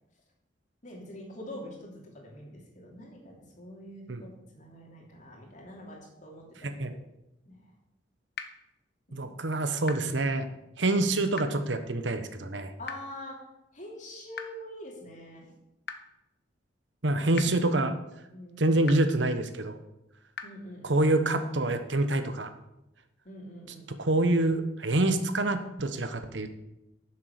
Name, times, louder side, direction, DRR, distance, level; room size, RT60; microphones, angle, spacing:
voice 1, 0.8-4.3 4.5-6.8 7.5-7.7 9.1-9.3 12.8-13.4 13.7-15.5 18.3-18.8 20.4-21.0 23.2-24.1, equal, 40° left, -1 dB, 3.0 m, -45 dB
voice 2, 6.6-6.9 9.1-10.5 10.8-12.7 17.0-17.9 18.6-19.8 20.8-22.5 24.0-26.5, right 2 dB, 80° right, 9 dB, 1.1 m, -26 dB
sound 1, 8.3-8.4 9.9-10.0 11.3-11.4 12.9-13.0 14.3-14.4 15.9-16.0 17.3-17.4 18.9-19.0 20.3-20.4, left 6 dB, 60° left, 1.0 m, -36 dB
10.5 x 7.4 x 6.6 m, 0.89 s
head